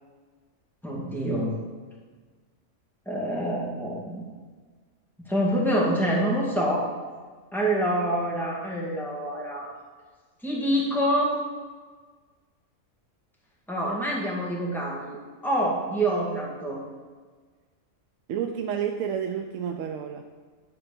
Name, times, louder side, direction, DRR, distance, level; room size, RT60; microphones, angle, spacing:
voice 1, 0.8-1.6 3.1-4.2 5.2-6.9 7.5-9.7 10.4-11.4 13.7-15.2 15.4-16.8, right 1 dB, ahead, -4 dB, 1.9 m, -26 dB
voice 2, 18.3-20.2, right 8 dB, 70° right, 4 dB, 0.9 m, -30 dB
11.0 x 4.5 x 6.8 m, 1.4 s
omnidirectional pair, 1.5 m